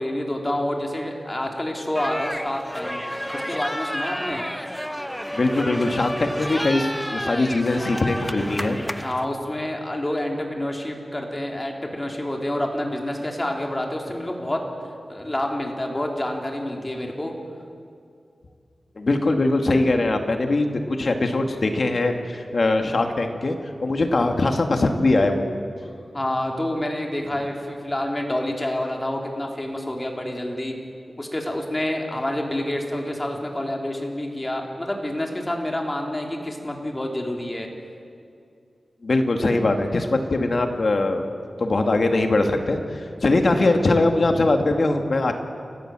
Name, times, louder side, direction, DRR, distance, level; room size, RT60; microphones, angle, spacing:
voice 1, 0.0-4.5 9.0-14.6 15.1-17.3 26.1-30.7 31.2-37.7, left 1 dB, 20° left, 1 dB, 3.3 m, -28 dB
sound 1, 2.0-9.3, equal, 5° left, 0.7 m, -31 dB
voice 2, 5.3-8.8 19.0-25.5 39.0-41.3 41.6-45.3, left 2 dB, 55° left, 5 dB, 2.1 m, -21 dB
29.0 x 15.0 x 7.6 m, 2.4 s
wide cardioid pair, 85°, 0 cm